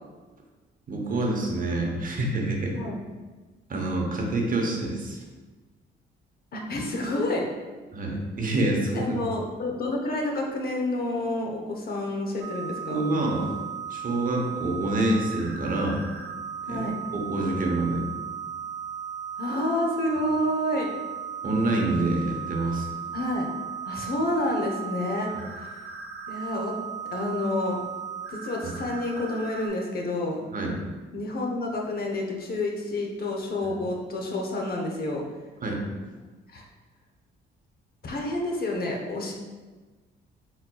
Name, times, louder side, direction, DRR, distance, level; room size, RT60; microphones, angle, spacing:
voice 1, 0.9-2.8 3.7-5.2 7.9-9.2 12.9-13.5 13.9-16.0 16.7-16.9 17.1-18.1 21.4-22.9 25.3-25.4 28.6-28.7 30.5-30.8 33.6-33.7 35.6-35.8, right 2 dB, 45° right, 0 dB, 0.9 m, -27 dB
voice 2, 6.5-7.4 8.9-13.0 16.6-16.9 19.4-20.9 23.1-23.5 23.8-25.3 25.6-25.8 26.3-26.7 27.1-27.8 28.3-30.4 31.1-35.2 36.5-36.7 38.0-39.3, left 1 dB, 50° left, 0 dB, 0.8 m, -29 dB
sound 1, 12.4-29.7, right 7 dB, 80° right, 0.7 m, -36 dB
4.4 x 3.9 x 2.3 m, 1.3 s
cardioid pair, 90°, 20 cm